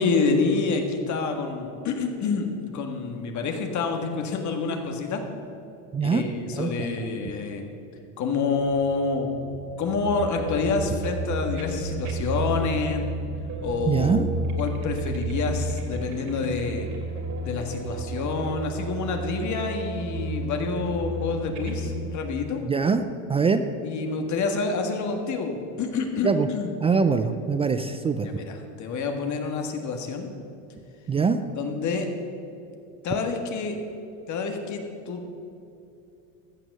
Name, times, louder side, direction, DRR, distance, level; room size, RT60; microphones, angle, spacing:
voice 1, 0.0-5.2 6.0-7.7 8.2-9.3 9.8-13.1 13.6-14.2 14.6-16.9 17.4-22.6 23.8-26.7 27.0-27.1 28.2-30.3 31.6-32.1 33.0-33.8 34.3-35.4, left 4 dB, 45° left, 4 dB, 1.8 m, -28 dB
voice 2, 5.9-6.2 6.5-7.1 13.9-14.3 22.6-23.0 23.3-23.6 26.2-26.5 26.8-28.3 31.1-31.4, right 5 dB, 15° right, 9 dB, 0.3 m, -23 dB
sound 1, 9.1-22.0, right 1 dB, 40° right, 2.7 m, -32 dB
14.5 x 6.1 x 7.6 m, 2.6 s
supercardioid pair, 110°, 42 cm